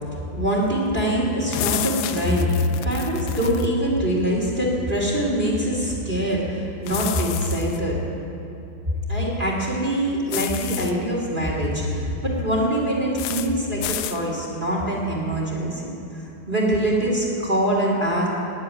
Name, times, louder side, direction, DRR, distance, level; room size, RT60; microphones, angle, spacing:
voice 1, 0.3-2.5 2.8-8.0 9.1-15.9 16.5-18.3, equal, 20° right, -4 dB, 1.6 m, -23 dB
sound 1, 1.5-3.7 6.9-7.8 10.3-10.9 13.2-13.5 13.8-14.2, left 11 dB, 80° left, 2.1 m, -30 dB
12.0 x 8.4 x 9.6 m, 2.9 s
omnidirectional pair, 4.2 m